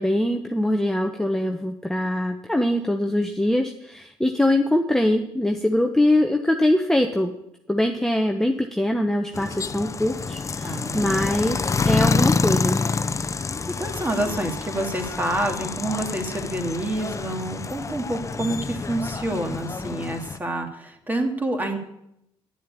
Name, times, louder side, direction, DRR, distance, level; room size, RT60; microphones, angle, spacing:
voice 1, 0.0-7.3 7.7-11.6 11.8-12.8, left 1 dB, 5° left, 4 dB, 1.0 m, -22 dB
sound 1, 9.3-20.4, left 4 dB, 30° left, 0.7 m, -27 dB
voice 2, 10.6-11.1 13.8-21.8, right 1 dB, 15° right, 3 dB, 2.4 m, -28 dB
10.5 x 7.5 x 8.4 m, 0.81 s
supercardioid pair, 70°, 11 cm